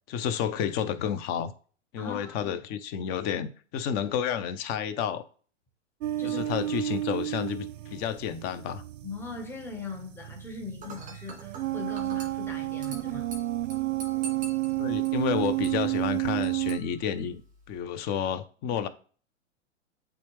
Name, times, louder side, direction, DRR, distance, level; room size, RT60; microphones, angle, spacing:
voice 1, 0.1-1.5 1.9-5.2 6.2-8.8 14.7-17.4 17.7-18.9, left 8 dB, 25° left, 0.6 m, -30 dB
voice 2, 2.0-2.6 6.2-6.6 9.0-13.3, left 4 dB, 5° left, 1.3 m, -40 dB
sound 1, 6.0-16.8, right 17 dB, 75° right, 0.5 m, -31 dB
Dishes pots and pans / Glass, 10.8-17.8, right 3 dB, 20° right, 1.8 m, -47 dB
8.3 x 3.6 x 3.3 m
hypercardioid pair, 120°, 39 cm